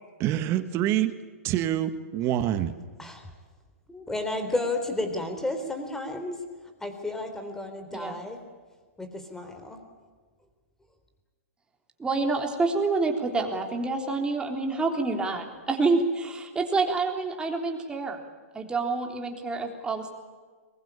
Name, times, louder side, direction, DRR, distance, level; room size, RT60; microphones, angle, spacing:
voice 1, 0.2-1.1 1.4-2.7, right 12 dB, 35° right, 11 dB, 1.8 m, -26 dB
voice 2, 3.9-6.4 6.8-8.4 9.0-9.8, left 2 dB, 5° left, 6 dB, 3.8 m, -32 dB
voice 3, 12.0-18.2 18.5-20.1, right 3 dB, 10° right, 2 dB, 3.7 m, -27 dB
22.5 x 21.0 x 8.7 m, 1.5 s
hypercardioid pair, 130°, 8 cm